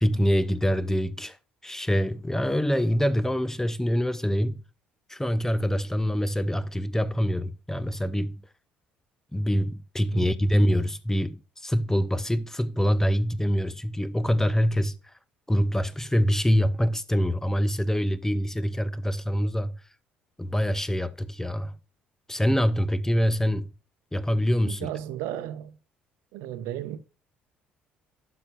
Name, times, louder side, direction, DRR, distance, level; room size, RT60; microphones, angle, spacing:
voice 1, 0.0-1.4 1.6-4.6 5.1-8.4 9.3-15.0 15.5-19.8 20.4-21.8 22.3-23.7 24.1-24.9, equal, 10° left, 0.6 m, -25 dB
voice 2, 10.1-10.4 24.6-25.8 26.3-27.0, right 11 dB, 65° right, 0.7 m, -34 dB
12.0 x 5.9 x 2.4 m
figure-of-eight pair, 55°, 5 cm